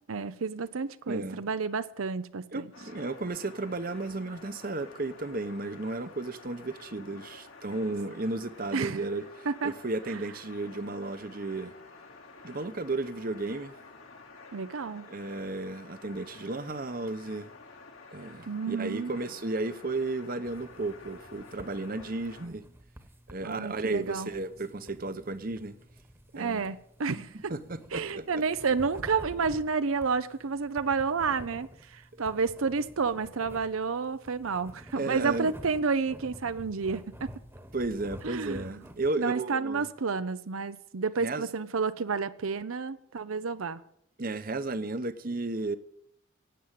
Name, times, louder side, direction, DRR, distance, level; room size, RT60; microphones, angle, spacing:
voice 1, 0.1-2.7 8.7-9.0 9.5-9.7 14.5-15.1 18.5-19.1 23.4-24.3 26.3-27.5 27.9-37.3 38.2-38.6 39.2-43.8, right 5 dB, 90° right, 0.7 m, -30 dB
voice 2, 1.1-1.5 2.5-11.7 12.4-13.8 15.1-17.5 18.1-22.6 23.3-25.8 26.3-26.7 27.1-27.2 27.5-28.4 35.0-35.5 37.7-39.9 41.2-41.5 44.2-45.8, right 2 dB, 45° right, 0.8 m, -34 dB
sound 1, 2.7-22.5, left 3 dB, 85° left, 3.6 m, -51 dB
sound 2, 20.4-39.1, equal, 10° right, 1.2 m, -50 dB
17.0 x 8.6 x 7.6 m
head